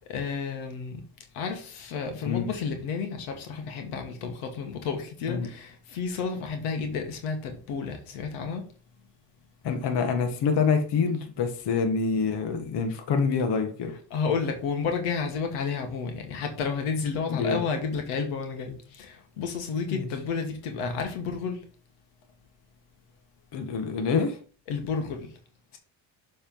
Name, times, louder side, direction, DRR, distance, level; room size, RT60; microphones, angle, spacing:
voice 1, 0.1-1.0 1.3-8.7 14.1-21.6 24.7-25.3, left 5 dB, 75° left, 1.6 m, -31 dB
voice 2, 9.6-14.0 17.3-17.6 19.9-20.1 23.5-24.4, left 5 dB, 55° left, 1.5 m, -26 dB
7.1 x 3.6 x 5.3 m
hypercardioid pair, 60°, 49 cm